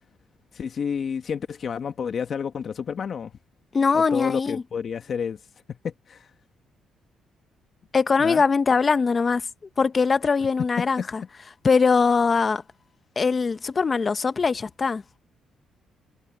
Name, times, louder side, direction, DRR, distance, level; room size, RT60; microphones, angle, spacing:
voice 1, 0.5-3.3 3.9-5.4 5.7-6.3 8.2-8.4 10.8-11.1, left 7 dB, 55° left, 1.4 m, -30 dB
voice 2, 3.7-4.6 7.9-9.4 9.8-11.2 11.6-12.6 13.2-15.0, left 5 dB, 35° left, 1.0 m, -21 dB
cardioid pair, 90°, 0 cm